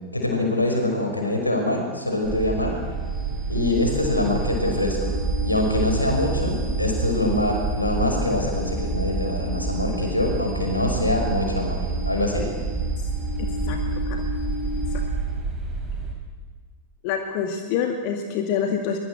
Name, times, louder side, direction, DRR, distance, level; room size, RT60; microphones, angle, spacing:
voice 1, 0.1-2.7 3.5-5.1 5.4-12.5, left 1 dB, 85° left, 2 dB, 5.6 m, -24 dB
sound 1, 1.8-15.3, left 3 dB, 20° left, 7.7 m, -37 dB
sound 2, 2.2-16.1, right 3 dB, 15° right, 5.6 m, -28 dB
voice 2, 13.7-14.2 17.0-19.0, left 7 dB, 45° left, 4 dB, 2.2 m, -26 dB
23.0 x 22.5 x 7.9 m, 1.5 s
figure-of-eight pair, 90°, 0 cm